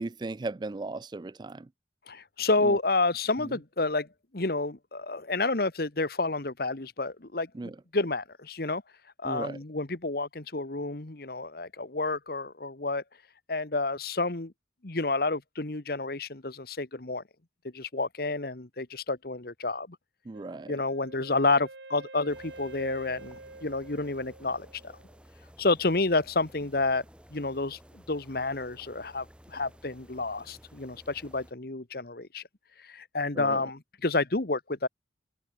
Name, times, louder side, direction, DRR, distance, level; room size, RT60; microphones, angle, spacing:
voice 1, 0.0-1.7 2.6-2.8 3.4-3.5 7.5-7.7 9.2-9.6 20.3-20.7 33.3-33.6, right 2 dB, 25° right, 0.4 m, -36 dB
voice 2, 2.1-4.1 4.3-8.8 9.2-13.0 13.5-14.5 14.8-17.2 17.6-20.0 20.7-24.9 25.6-27.0 27.3-32.4 32.8-34.9, left 3 dB, 55° left, 1.4 m, -30 dB
Wind instrument woodwind instrument, 20.3-25.2, right 2 dB, 70° right, 2.7 m, -48 dB
sound 1, 22.3-31.5, equal, 5° right, 5.0 m, -54 dB
head